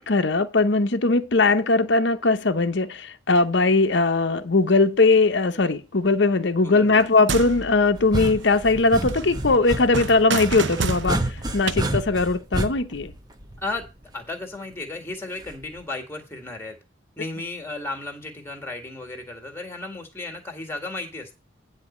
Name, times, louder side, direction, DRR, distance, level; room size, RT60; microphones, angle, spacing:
voice 1, 0.0-13.1, left 3 dB, 60° left, 0.8 m, -20 dB
voice 2, 6.6-7.1 13.6-13.9 14.1-16.8 17.2-21.3, left 2 dB, 10° left, 1.8 m, -34 dB
sound 1, 6.9-8.8 9.1-11.8, right 4 dB, 65° right, 0.9 m, -30 dB
sound 2, 8.0-14.0 15.4-15.8, right 1 dB, 20° right, 0.9 m, -30 dB
10.0 x 4.1 x 7.2 m
head